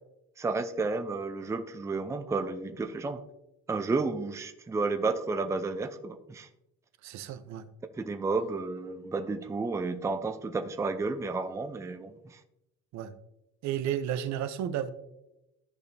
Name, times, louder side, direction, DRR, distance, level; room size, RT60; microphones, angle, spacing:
voice 1, 0.4-3.2 3.7-6.5 8.0-12.4, right 3 dB, 10° right, 8 dB, 0.4 m, -32 dB
voice 2, 7.0-7.6 12.9-13.2 13.6-14.9, right 10 dB, 65° right, 11 dB, 0.7 m, -32 dB
14.0 x 5.1 x 2.6 m, 0.91 s
cardioid pair, 130°, 30 cm